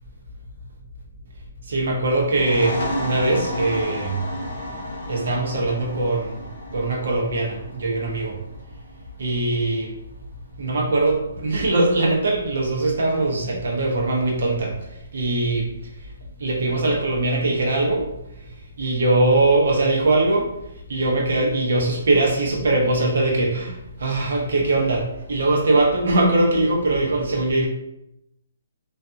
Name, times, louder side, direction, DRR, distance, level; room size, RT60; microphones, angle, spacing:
voice 1, 1.7-4.2 5.1-6.4 6.7-8.4 9.2-9.9 10.6-14.7 15.1-15.7 16.4-18.0 18.8-20.5 20.9-23.7 24.0-27.7, right 2 dB, 60° right, -1 dB, 0.8 m, -21 dB
sound 1, 2.2-9.6, left 1 dB, 55° left, 0.9 m, -32 dB
2.5 x 2.3 x 2.6 m, 0.84 s
hypercardioid pair, 175°, 0 cm